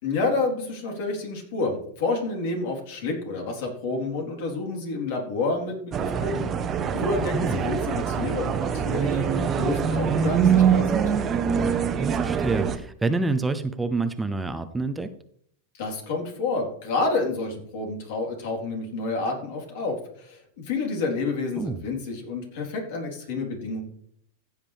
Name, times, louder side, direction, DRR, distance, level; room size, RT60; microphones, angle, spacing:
voice 1, 0.0-6.5 6.9-11.1 15.7-23.8, left 3 dB, 65° left, 1 dB, 3.9 m, -29 dB
sound 1, 5.9-12.8, right 7 dB, 30° right, 0.9 m, -24 dB
voice 2, 7.3-7.7 12.0-15.1 21.6-21.8, right 3 dB, 10° right, 9 dB, 0.6 m, -27 dB
15.0 x 7.3 x 3.5 m, 0.65 s
hypercardioid pair, 120°, 0 cm